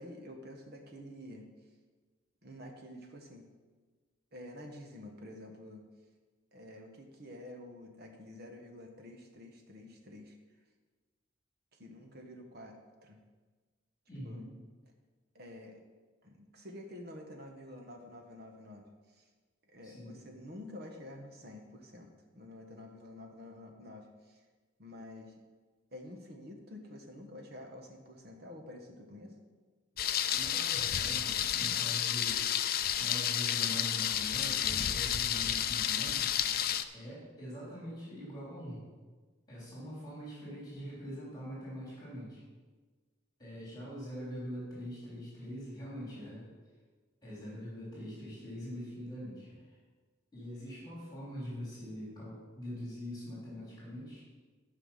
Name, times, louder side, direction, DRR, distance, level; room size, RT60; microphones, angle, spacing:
voice 1, 0.0-1.5 2.4-3.4 4.3-5.8 6.5-10.4 11.7-13.2 14.2-14.5 15.3-15.8 16.2-19.3 19.7-24.4 24.8-25.3 25.9-29.3, left 1 dB, 50° right, 3 dB, 1.3 m, -49 dB
voice 2, 14.1-14.5 19.8-20.1 30.3-32.4 33.0-36.2 36.9-38.8 39.5-42.4 43.4-46.5 47.2-49.7 50.3-54.2, equal, 20° left, -7 dB, 3.5 m, -43 dB
Thunder, 30.0-36.8, left 10 dB, 45° left, 0.4 m, -31 dB
12.0 x 5.8 x 5.7 m, 1.4 s
head